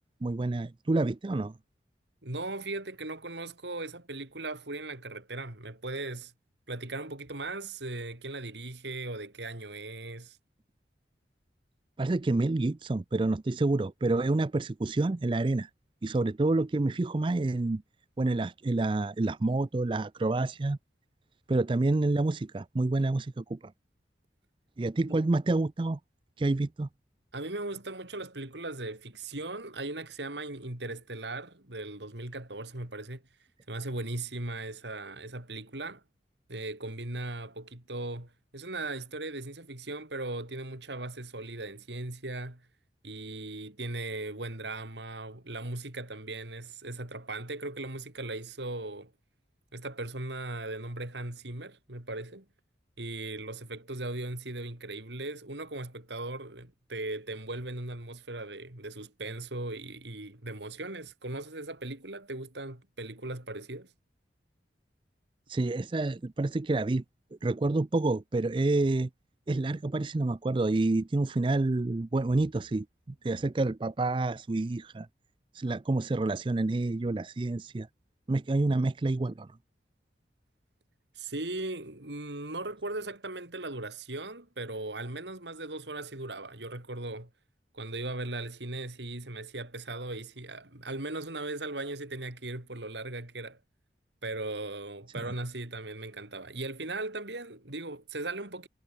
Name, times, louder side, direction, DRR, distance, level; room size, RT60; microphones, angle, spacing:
voice 1, 0.2-1.5 12.0-15.7 16.0-17.8 18.2-20.8 21.5-23.7 24.8-26.0 26.4-26.9 65.5-67.0 67.4-69.1 69.5-72.9 73.2-75.1 75.5-77.9 78.3-79.5, right 2 dB, 30° right, 0.4 m, -28 dB
voice 2, 2.2-6.3 6.7-10.4 25.1-25.2 27.3-33.2 33.7-36.0 36.5-42.7 43.0-49.1 49.7-52.5 53.0-63.9 81.2-87.3 87.7-93.6 94.2-98.7, right 2 dB, 80° right, 3.8 m, -38 dB
head